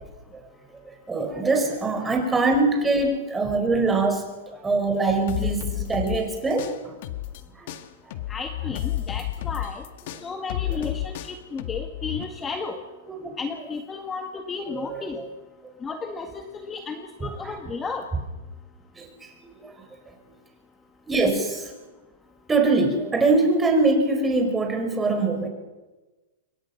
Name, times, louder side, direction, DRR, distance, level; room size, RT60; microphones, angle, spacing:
voice 1, 0.7-6.9 7.6-7.7 10.8-10.9 13.2-13.3 14.7-15.3 17.2-17.5 19.0-19.7 21.1-21.7 22.5-25.5, right 3 dB, 10° right, 3 dB, 4.9 m, -23 dB
sound 1, 5.3-7.4 7.7-12.2, left 14 dB, 55° left, 1.9 m, -31 dB
voice 2, 8.3-9.8 10.2-11.1 11.5-12.8 13.4-15.2 15.8-18.1, left 4 dB, 15° left, 5 dB, 1.8 m, -33 dB
27.5 x 23.0 x 5.9 m, 1.2 s
hypercardioid pair, 145°, 0 cm